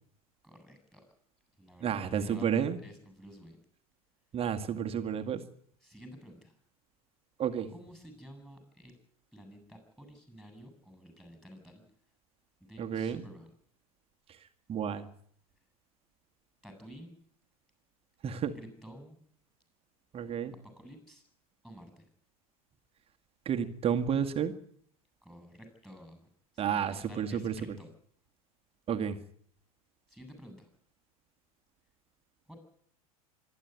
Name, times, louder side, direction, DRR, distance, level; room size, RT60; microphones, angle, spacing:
voice 1, 0.4-1.0 1.6-3.6 5.8-6.5 7.7-8.9 9.3-11.8 12.6-13.5 16.6-17.2 18.6-19.2 20.6-21.2 21.6-22.1 25.2-26.3 26.5-27.9 30.1-30.7 32.5-32.6, equal, ahead, 6 dB, 7.9 m, -51 dB
voice 2, 1.8-2.8 4.3-5.4 7.4-7.7 12.8-13.2 14.3-15.1 18.2-18.5 20.1-20.5 23.5-24.5 26.6-27.8 28.9-29.2, right 8 dB, 30° right, 6 dB, 1.9 m, -31 dB
25.0 x 11.0 x 9.5 m, 0.63 s
hypercardioid pair, 90°, 19 cm